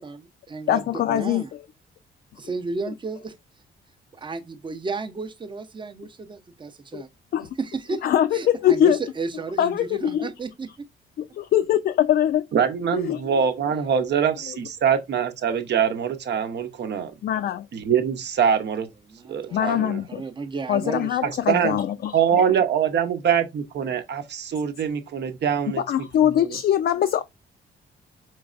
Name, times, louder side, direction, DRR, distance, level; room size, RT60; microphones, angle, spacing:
voice 1, 0.0-1.5 2.4-3.3 4.1-7.1 7.6-8.0 8.3-10.9 19.1-19.8 20.1-21.8, right 4 dB, 25° right, 0.7 m, -33 dB
voice 2, 0.7-1.4 6.9-7.0 7.3-7.5 8.0-9.0 9.6-10.3 11.2-12.5 12.9-13.3 13.9-14.0 14.5-14.6 17.2-17.7 19.5-20.2 20.7-22.5 25.8-27.2, left 11 dB, 55° left, 0.4 m, -22 dB
voice 3, 12.5-17.1 17.7-18.9 19.3-20.0 21.2-21.8 22.1-25.8 26.2-26.5, right 8 dB, 60° right, 0.8 m, -23 dB
4.6 x 3.1 x 2.4 m
cardioid pair, 90°, 20 cm